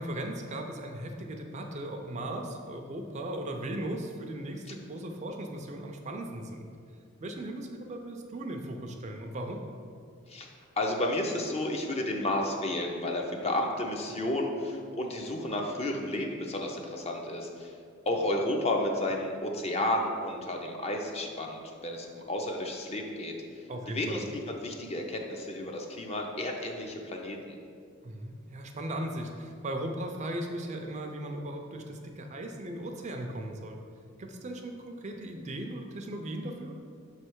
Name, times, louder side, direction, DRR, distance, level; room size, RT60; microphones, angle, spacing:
voice 1, 0.0-6.7 7.2-9.7 23.7-24.2 28.0-33.8 34.2-36.8, right 1 dB, 35° right, 3 dB, 0.4 m, -37 dB
voice 2, 10.3-17.8 18.1-27.6, left 1 dB, 30° left, 2 dB, 0.5 m, -32 dB
6.5 x 3.2 x 4.6 m, 2.2 s
head